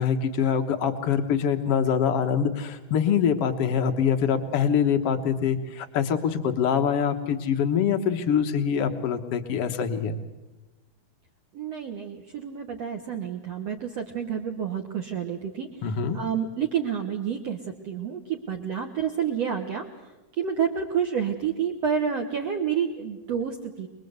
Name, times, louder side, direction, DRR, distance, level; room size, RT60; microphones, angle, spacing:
voice 1, 0.0-10.2 15.8-16.2, left 7 dB, 80° left, 7 dB, 1.3 m, -24 dB
voice 2, 11.5-15.7 16.1-17.6 17.8-19.9 20.4-23.9, right 7 dB, 60° right, 3 dB, 1.7 m, -29 dB
24.5 x 22.0 x 8.0 m, 1.1 s
omnidirectional pair, 4.7 m